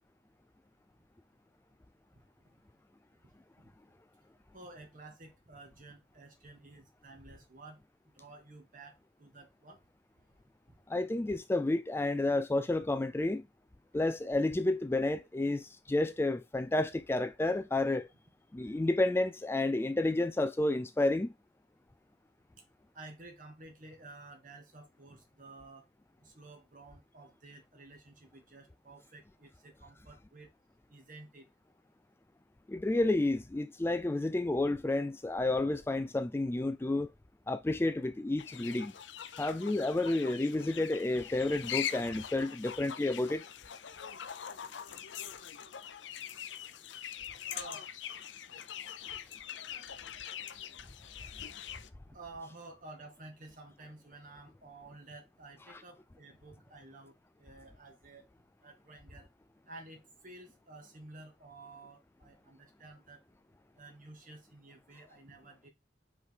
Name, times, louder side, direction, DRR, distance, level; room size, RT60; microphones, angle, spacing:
voice 1, 3.2-3.7 4.5-7.8 8.2-8.9 9.2-9.8 11.2-11.3 22.9-25.9 26.2-30.5 30.9-31.5 47.5-47.9 52.1-58.2 58.6-59.3 59.7-63.2 63.8-65.7, right 2 dB, 45° right, 1.9 m, -52 dB
voice 2, 10.9-13.4 13.9-18.1 18.5-21.3 32.7-37.1 37.5-38.9 39.4-43.4, left 2 dB, 15° left, 0.3 m, -30 dB
sound 1, 38.4-51.9, left 9 dB, 70° left, 0.6 m, -43 dB
5.3 x 4.7 x 3.8 m
head